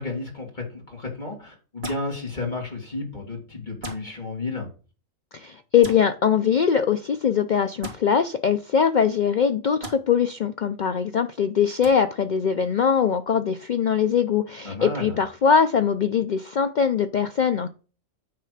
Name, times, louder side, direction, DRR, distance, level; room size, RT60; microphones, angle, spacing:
voice 1, 0.0-4.7 14.6-15.2, left 3 dB, 35° left, -1 dB, 2.3 m, -32 dB
sound 1, 1.8-2.1 3.8-4.0 5.8-6.0 7.8-8.0 9.8-9.9 11.8-11.9, right 1 dB, 50° right, 2.2 m, -35 dB
voice 2, 5.3-17.7, left 7 dB, 65° left, 9 dB, 0.4 m, -22 dB
9.6 x 3.3 x 6.5 m, 0.37 s
omnidirectional pair, 1.3 m